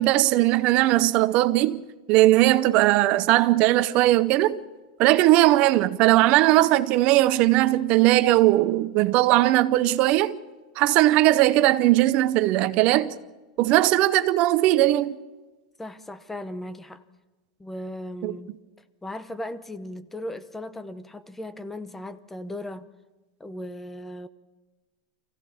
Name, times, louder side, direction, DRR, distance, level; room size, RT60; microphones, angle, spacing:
voice 1, 0.0-1.8 2.1-4.6 5.0-10.4 10.8-13.1 13.6-15.2 18.2-18.4, right 16 dB, 45° right, 0.7 m, -19 dB
voice 2, 15.8-17.0 17.6-18.5 19.0-22.9 23.4-24.3, left 1 dB, 10° left, 0.8 m, -37 dB
24.0 x 16.0 x 7.0 m
supercardioid pair, 135°, 3 cm